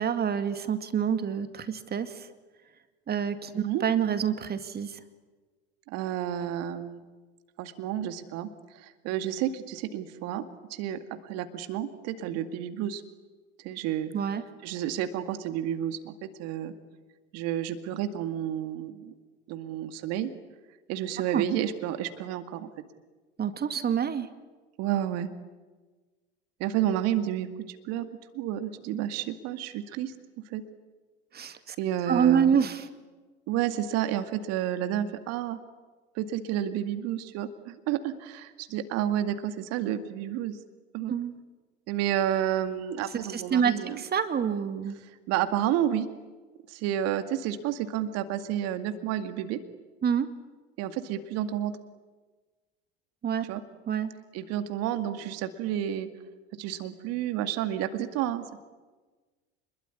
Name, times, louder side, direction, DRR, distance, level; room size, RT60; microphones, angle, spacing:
voice 1, 0.0-2.3 3.1-5.0 14.1-14.4 21.3-21.4 23.4-24.3 31.3-31.8 32.1-32.9 41.1-41.3 43.3-45.0 50.0-50.3 53.2-53.4 53.9-54.1, right 8 dB, 30° right, 10 dB, 2.2 m, -27 dB
voice 2, 5.9-7.0 7.6-10.4 10.7-13.0 13.6-14.1 14.6-16.7 17.3-19.1 19.5-20.3 20.9-22.7 24.8-25.3 26.6-28.1 28.3-30.1 30.5-30.6 31.8-32.6 33.5-35.6 36.1-40.6 40.9-41.1 41.9-44.0 45.0-46.1 46.7-49.6 50.8-51.7 53.4-53.6 54.3-56.1 56.6-58.6, right 11 dB, 50° right, 9 dB, 2.1 m, -30 dB
27.0 x 22.0 x 9.9 m, 1.3 s
figure-of-eight pair, 75°, 31 cm